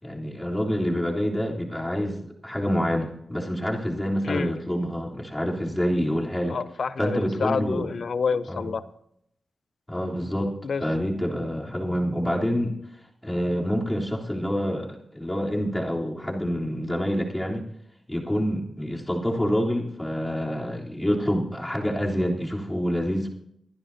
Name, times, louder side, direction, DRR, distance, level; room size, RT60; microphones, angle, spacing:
voice 1, 0.0-2.2 2.4-6.6 7.0-7.9 8.5-8.6 9.9-12.7 13.2-17.6 18.1-23.3, equal, 10° left, -3 dB, 3.5 m, -27 dB
voice 2, 6.5-8.8 10.6-10.8, left 5 dB, 65° left, 14 dB, 0.7 m, -28 dB
24.5 x 10.5 x 2.8 m, 0.74 s
cardioid pair, 65°, 0 cm